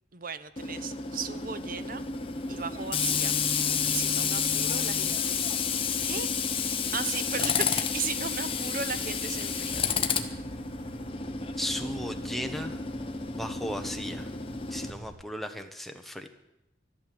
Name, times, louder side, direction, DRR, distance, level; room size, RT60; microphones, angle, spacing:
voice 1, 0.1-2.0 2.5-3.4 3.9-5.4 6.0-6.3 6.9-9.8, right 6 dB, 50° right, 13 dB, 0.8 m, -36 dB
Tools, 0.6-14.9, left 6 dB, 30° left, 1.1 m, -30 dB
sound 1, 1.3-15.1, right 2 dB, 70° right, 7.2 m, -49 dB
voice 2, 11.6-12.8 13.4-14.3 14.7-16.3, equal, ahead, 5 dB, 1.0 m, -36 dB
12.5 x 12.0 x 7.8 m, 0.89 s
head